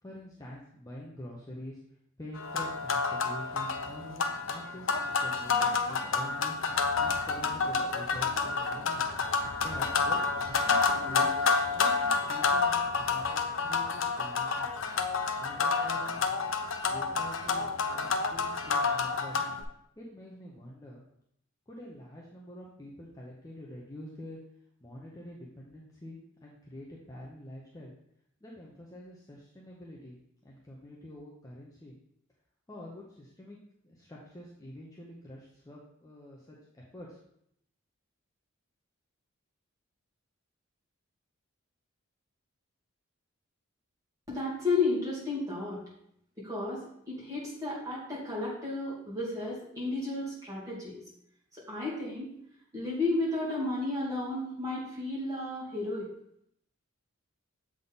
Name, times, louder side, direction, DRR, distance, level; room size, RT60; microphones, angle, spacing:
voice 1, 0.0-1.8 2.2-6.6 7.0-9.0 9.6-11.3 11.7-14.8 15.4-16.3 16.9-19.4 20.0-21.0 21.7-24.4 24.8-27.9 28.4-30.2 30.4-31.9 32.7-33.6 33.8-37.2, left 1 dB, 15° left, -4 dB, 0.7 m, -46 dB
sound 1, 2.4-19.6, left 4 dB, 65° left, 0.5 m, -29 dB
voice 2, 44.3-45.8 46.4-51.0 51.5-52.3 52.7-56.1, left 2 dB, 15° right, -7 dB, 2.4 m, -33 dB
7.2 x 3.6 x 4.0 m, 0.73 s
head